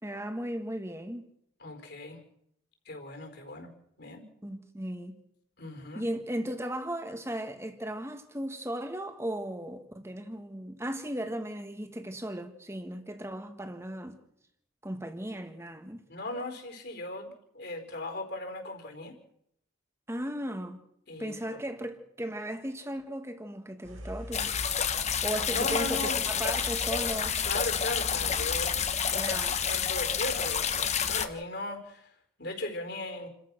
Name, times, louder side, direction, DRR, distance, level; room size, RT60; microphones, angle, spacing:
voice 1, 0.0-1.3 4.4-5.2 5.9-14.2 14.8-16.0 20.1-20.8 21.2-24.5 25.2-27.4 29.1-29.6, right 1 dB, 15° right, 1.8 m, -36 dB
voice 2, 1.6-2.2 2.8-3.7 4.0-4.3 5.6-6.1 16.1-19.2 21.1-21.6 25.5-26.2 27.4-28.8 29.2-29.4 29.6-30.7 31.1-33.3, left 2 dB, 55° left, 4.5 m, -37 dB
sound 1, 23.8-30.9, equal, 85° right, 4.6 m, -49 dB
sound 2, 24.3-31.3, left 7 dB, 35° left, 1.2 m, -29 dB
29.5 x 14.5 x 6.3 m
head